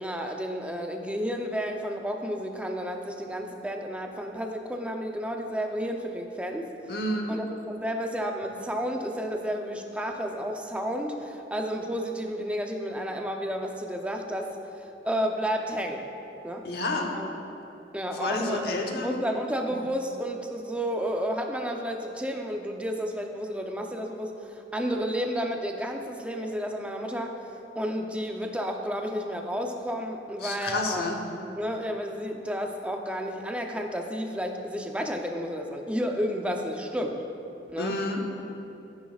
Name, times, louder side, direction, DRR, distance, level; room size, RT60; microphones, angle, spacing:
voice 1, 0.0-6.7 7.3-16.1 16.4-16.7 17.1-17.3 17.9-18.6 18.9-27.4 27.7-31.0 31.6-37.2 37.7-38.0, equal, 5° right, 3 dB, 0.6 m, -31 dB
voice 2, 6.9-7.4 16.6-17.1 18.2-19.2 19.7-19.8 30.4-31.2 37.8-38.2, left 2 dB, 60° left, 1 dB, 1.1 m, -30 dB
13.5 x 10.0 x 2.4 m, 2.8 s
head